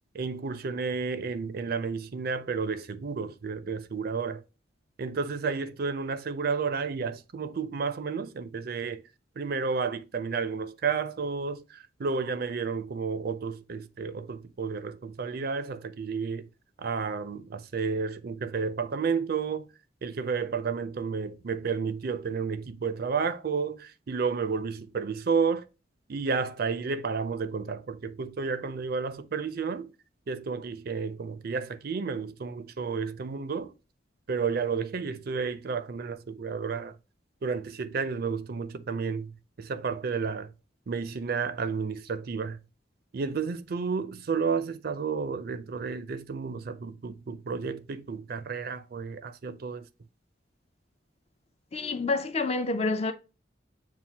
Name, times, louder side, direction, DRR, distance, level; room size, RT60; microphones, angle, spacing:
voice 1, 0.1-4.4 5.0-9.0 9.4-16.5 16.8-19.7 20.0-25.7 26.1-29.9 30.3-33.7 34.3-37.0 37.4-40.5 40.9-42.6 43.1-49.9, right 5 dB, 55° right, 0.4 m, -31 dB
voice 2, 51.7-53.1, left 3 dB, 35° left, 0.5 m, -28 dB
7.2 x 2.4 x 2.7 m
head